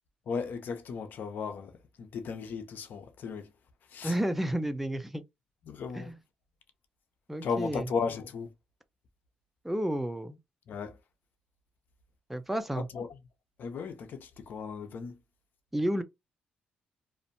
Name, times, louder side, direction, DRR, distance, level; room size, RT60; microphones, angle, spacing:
voice 1, 0.3-3.5 3.9-4.2 5.7-6.1 7.4-8.5 10.7-11.0 12.8-13.1 13.6-15.2, left 5 dB, 65° left, 0.6 m, -36 dB
voice 2, 4.0-5.2 5.9-6.2 7.3-7.8 9.6-10.4 12.3-12.9 15.7-16.0, right 1 dB, 5° right, 0.5 m, -31 dB
2.5 x 2.1 x 2.6 m
cardioid pair, 80°, 3 cm